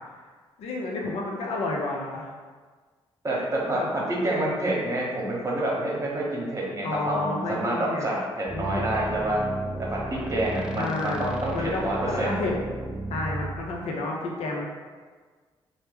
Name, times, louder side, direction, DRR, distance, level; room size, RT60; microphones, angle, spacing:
voice 1, 0.6-2.3 3.3-3.9 6.8-8.1 8.5-8.9 10.7-11.3 11.5-12.5 13.1-14.6, left 2 dB, 80° left, -1 dB, 0.6 m, -31 dB
voice 2, 3.2-9.4 9.9-12.4, right 1 dB, 30° right, -4 dB, 1.0 m, -28 dB
sound 1, 8.5-13.6, right 2 dB, 10° right, 0.4 m, -34 dB
3.2 x 2.0 x 3.4 m, 1.5 s
supercardioid pair, 65°, 11 cm